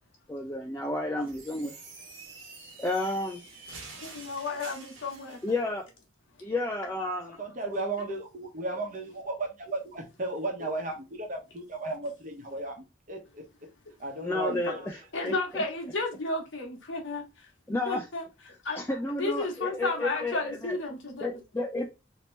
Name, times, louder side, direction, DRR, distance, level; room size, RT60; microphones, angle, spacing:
voice 1, 0.3-1.7 2.8-3.4 5.4-5.8 6.4-7.4 14.2-15.0 15.2-15.6 17.7-18.1 18.7-20.8 21.2-21.9, left 2 dB, 10° left, 0.4 m, -31 dB
sound 1, 1.2-5.6, right 3 dB, 75° right, 1.2 m, -47 dB
voice 2, 4.0-5.4 10.6-10.7 14.5-14.7 15.1-17.5 17.9-18.2 18.6-18.8 19.2-21.4, left 3 dB, 75° left, 1.1 m, -33 dB
voice 3, 7.4-13.4 14.0-15.0, right 2 dB, 40° right, 1.0 m, -35 dB
2.9 x 2.9 x 3.2 m
head